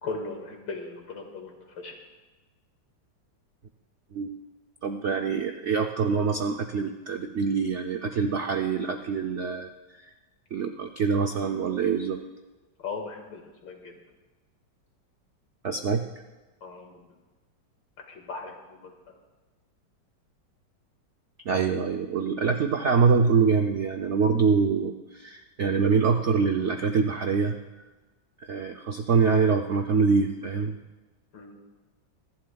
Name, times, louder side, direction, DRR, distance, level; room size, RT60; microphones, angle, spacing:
voice 1, 0.0-2.0 12.8-13.9 16.6-17.1 18.1-19.2 31.3-31.6, left 4 dB, 80° left, 2 dB, 2.5 m, -38 dB
voice 2, 4.8-10.1 10.5-12.2 15.6-16.0 21.4-27.6 28.4-30.8, right 5 dB, 70° right, 4 dB, 0.6 m, -25 dB
25.0 x 11.5 x 2.3 m, 1.2 s
omnidirectional pair, 2.0 m